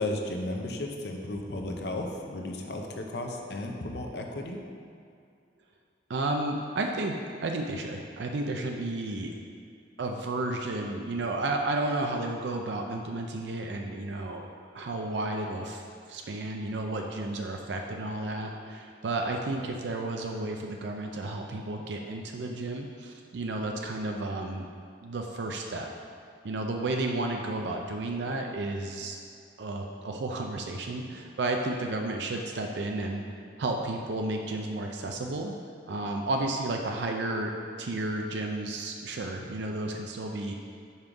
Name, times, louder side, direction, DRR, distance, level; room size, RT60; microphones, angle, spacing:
voice 1, 0.0-4.6, left 1 dB, 65° left, 2 dB, 0.7 m, -34 dB
voice 2, 6.1-9.3 10.0-14.5 14.7-15.8 16.1-24.7 25.0-25.9 26.4-29.2 29.6-33.2 33.6-35.6 35.9-37.5 37.8-40.5, right 2 dB, 75° right, 2 dB, 0.5 m, -32 dB
5.5 x 5.3 x 4.7 m, 2.3 s
head